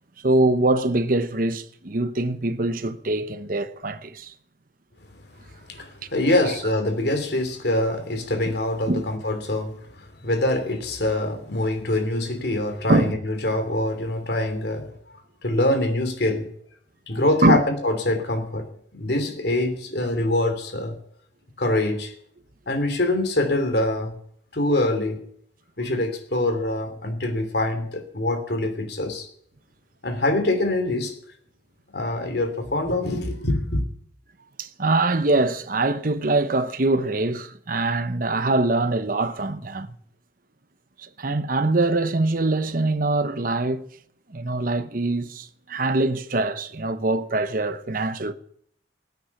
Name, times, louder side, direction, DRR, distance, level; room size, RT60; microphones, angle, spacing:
voice 1, 0.2-4.3 8.3-8.4 8.9-9.1 12.9-13.2 17.4-17.6 34.6-40.0 41.0-43.9 44.3-48.3, right 2 dB, 50° right, 1.0 m, -23 dB
voice 2, 5.7-14.9 15.4-16.4 17.1-20.9 21.6-22.1 22.7-24.1 24.5-25.2 25.8-29.3 30.0-31.1 31.9-33.8, left 1 dB, 60° left, 3.0 m, -24 dB
16.5 x 9.4 x 5.9 m
head